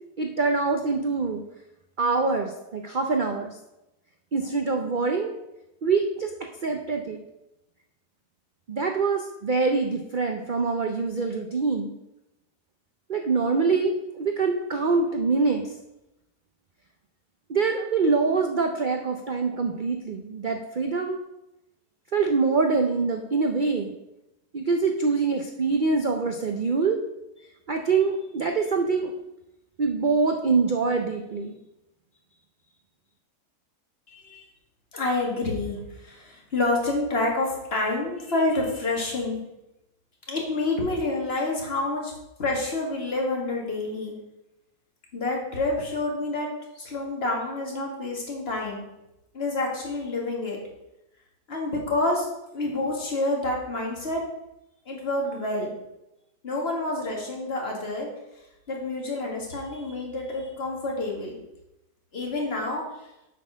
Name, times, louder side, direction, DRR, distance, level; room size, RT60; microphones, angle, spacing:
voice 1, 0.2-1.4 2.0-3.5 4.3-5.3 5.8-6.3 6.6-7.2 8.7-11.9 13.1-15.7 17.5-21.2 22.1-23.9 24.5-27.0 27.7-29.1 29.8-31.5, right 4 dB, 85° right, 4 dB, 0.4 m, -24 dB
voice 2, 34.1-34.5 34.9-39.4 40.3-42.1 42.4-44.2 45.1-46.5 46.8-48.8 49.3-50.6 51.5-52.3 52.5-54.2 54.9-55.7 56.4-58.1 58.7-61.4 62.1-62.8, left 2 dB, 40° left, -1 dB, 2.0 m, -28 dB
8.1 x 4.2 x 6.3 m, 0.91 s
omnidirectional pair, 1.8 m